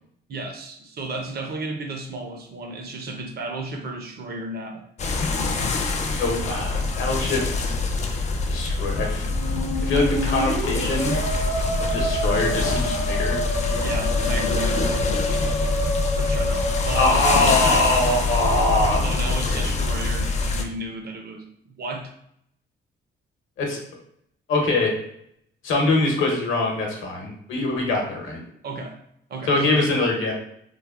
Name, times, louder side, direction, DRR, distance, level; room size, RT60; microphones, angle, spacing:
voice 1, 0.3-4.8 13.8-15.0 16.2-17.9 19.0-22.1 28.6-29.0 29.3-29.9, right 2 dB, 55° right, 4 dB, 0.6 m, -33 dB
sound 1, 5.0-20.6, left 3 dB, 35° left, 0.4 m, -25 dB
voice 2, 6.1-6.7 6.9-7.5 8.5-9.3 9.8-11.2 11.8-13.4 16.9-19.1 19.5-19.6 23.6-23.8 24.5-24.9 25.6-28.4 29.5-30.3, left 2 dB, 80° left, 0 dB, 0.8 m, -23 dB
Musical instrument, 9.2-18.0, equal, 75° right, 1.4 m, -29 dB
3.2 x 2.1 x 2.3 m, 0.72 s
cardioid pair, 90°, 20 cm